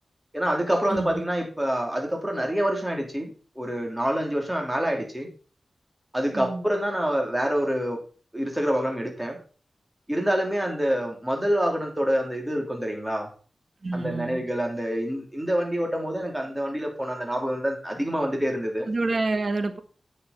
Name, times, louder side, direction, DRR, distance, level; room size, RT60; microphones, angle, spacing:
voice 1, 0.3-5.3 6.1-8.0 8.3-9.4 10.1-13.3 13.9-18.9, equal, 10° right, 2 dB, 3.2 m, -26 dB
voice 2, 0.9-1.2 6.3-6.7 13.8-14.4 18.8-19.8, right 3 dB, 55° right, 9 dB, 1.4 m, -28 dB
9.0 x 7.0 x 5.3 m, 0.39 s
wide cardioid pair, 70°, 0 cm